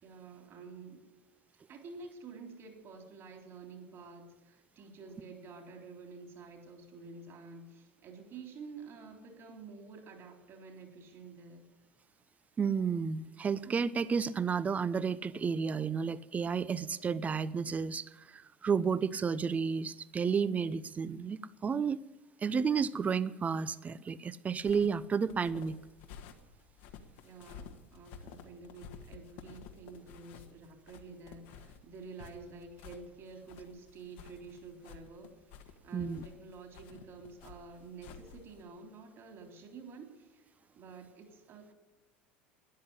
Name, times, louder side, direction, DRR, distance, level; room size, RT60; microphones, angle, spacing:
voice 1, 0.0-1.1 1.7-11.7 27.2-40.5 40.7-41.7, right 4 dB, 45° right, 3 dB, 3.6 m, -50 dB
voice 2, 12.6-22.0 22.4-25.8 35.9-36.2, right 6 dB, 25° right, 16 dB, 0.7 m, -32 dB
sound 1, 24.5-38.6, left 6 dB, 70° left, 1.7 m, -52 dB
13.5 x 10.0 x 9.8 m, 1.1 s
hypercardioid pair, 85°, 6 cm